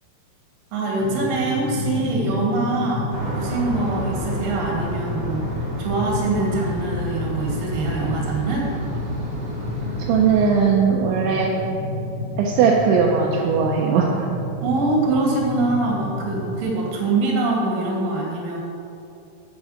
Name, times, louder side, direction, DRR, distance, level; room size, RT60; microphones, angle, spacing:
voice 1, 0.7-5.4 5.8-8.7 14.6-18.6, right 2 dB, 55° right, -2 dB, 3.3 m, -24 dB
sound 1, 1.0-16.6, left 1 dB, 75° left, 3.6 m, -30 dB
sound 2, 3.1-10.7, right 2 dB, 40° right, 3.2 m, -32 dB
voice 2, 10.1-11.5 12.4-14.1, right 6 dB, 80° right, -1 dB, 3.0 m, -18 dB
8.6 x 8.4 x 6.4 m, 2.9 s
omnidirectional pair, 5.4 m